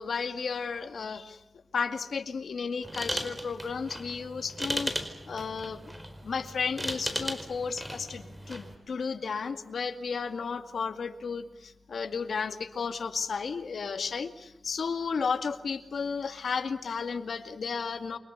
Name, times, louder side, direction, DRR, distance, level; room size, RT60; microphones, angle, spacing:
voice 1, 0.0-1.4 1.7-4.9 5.3-6.0 6.2-18.2, left 5 dB, 75° left, 8 dB, 2.2 m, -33 dB
sound 1, 2.8-8.8, equal, 10° right, 4.6 m, -37 dB
29.5 x 24.5 x 6.8 m, 0.93 s
wide cardioid pair, 110°, 0 cm